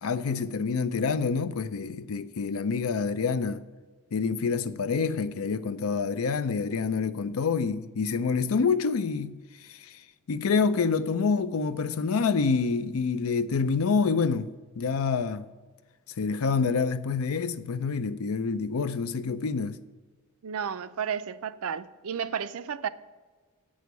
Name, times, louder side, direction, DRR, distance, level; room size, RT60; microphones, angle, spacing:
voice 1, 0.0-3.6 4.1-9.3 9.7-10.0 10.3-15.4 16.2-19.8, left 5 dB, 80° left, 0.5 m, -27 dB
voice 2, 20.4-22.9, right 7 dB, 80° right, 0.5 m, -32 dB
8.4 x 6.3 x 8.1 m
head